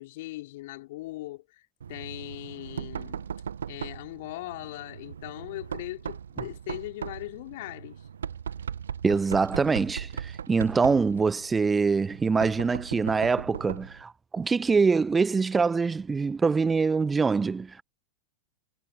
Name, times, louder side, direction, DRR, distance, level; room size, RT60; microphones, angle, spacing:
voice 1, 0.0-1.6 1.9-3.3 3.7-8.0, left 18 dB, 50° left, 3.9 m, -39 dB
Knock, 1.8-14.0, right 8 dB, 70° right, 1.3 m, -38 dB
voice 2, 9.0-17.8, right 4 dB, 15° right, 1.0 m, -24 dB
figure-of-eight pair, 90°, 0 cm